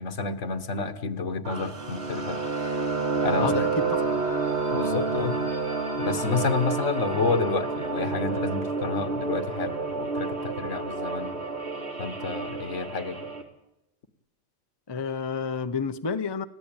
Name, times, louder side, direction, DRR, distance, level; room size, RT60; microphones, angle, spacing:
voice 1, 0.0-2.4 3.2-3.7 4.7-5.4 6.0-11.4 12.0-13.2, left 4 dB, 75° left, 9 dB, 1.8 m, -29 dB
sound 1, 1.5-13.4, right 4 dB, 60° right, 3.0 m, -29 dB
voice 2, 3.4-4.0 14.9-16.4, left 5 dB, 25° left, 9 dB, 0.7 m, -29 dB
30.0 x 14.5 x 8.9 m, 0.90 s
omnidirectional pair, 1.3 m